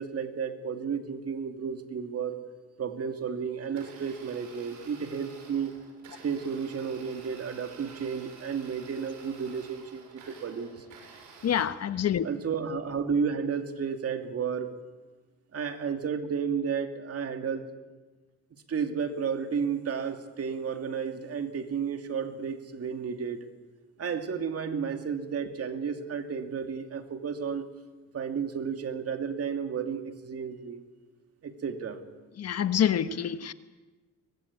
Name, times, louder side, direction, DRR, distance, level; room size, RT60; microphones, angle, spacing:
voice 1, 0.0-2.4 2.8-5.7 6.2-10.8 12.2-14.7 15.5-17.7 18.7-23.5 24.0-27.6 28.1-30.8 31.4-32.0, right 6 dB, 50° right, 7 dB, 2.6 m, -32 dB
Domestic sounds home sounds, 3.6-11.6, right 4 dB, 75° right, 7.2 m, -51 dB
voice 2, 11.4-12.3 32.4-33.5, left 9 dB, 55° left, 12 dB, 1.3 m, -26 dB
24.0 x 20.5 x 8.7 m, 1.2 s
cardioid pair, 90°, 30 cm